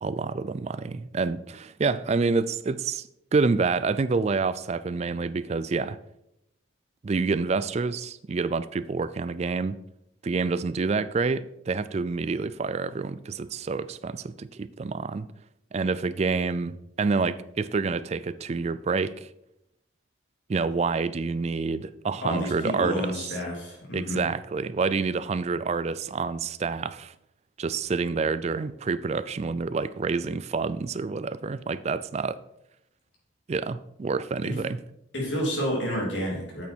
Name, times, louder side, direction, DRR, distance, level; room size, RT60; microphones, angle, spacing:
voice 1, 0.0-6.0 7.0-9.8 10.2-15.3 15.7-19.3 20.5-23.2 23.9-27.1 27.6-32.4 33.5-34.8, right 4 dB, 35° right, 0.3 m, -28 dB
voice 2, 22.2-24.2 34.4-34.6 35.1-36.6, equal, 65° left, 3.1 m, -30 dB
8.3 x 6.6 x 4.4 m
head